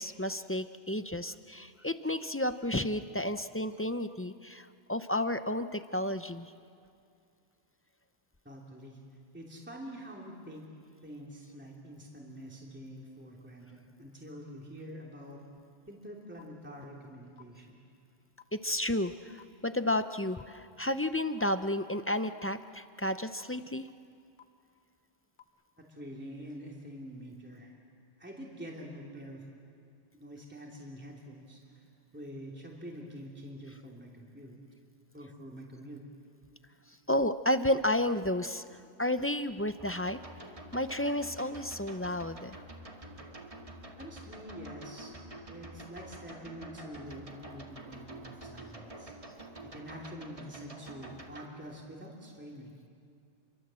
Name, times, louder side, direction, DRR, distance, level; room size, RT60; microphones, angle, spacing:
voice 1, 0.0-6.5 18.5-23.9 37.1-40.2 40.7-42.6, left 1 dB, 15° left, 10 dB, 0.5 m, -32 dB
voice 2, 8.4-9.0 9.3-10.6 11.0-15.4 15.9-17.8 25.9-27.7 28.2-29.4 30.1-34.6 35.1-36.0 44.0-49.1 49.7-52.7, equal, 10° right, -2 dB, 2.9 m, -46 dB
sound 1, 16.4-16.5 17.4-17.5 18.4-18.5 19.4-19.5 20.4-20.5 21.4-21.5 22.4-22.5 23.4-23.5 24.4-24.5 25.4-25.5, left 9 dB, 45° left, 1.3 m, -53 dB
sound 2, 39.8-51.5, right 1 dB, 30° right, 2.1 m, -48 dB
29.5 x 24.0 x 7.6 m, 2.4 s
omnidirectional pair, 1.2 m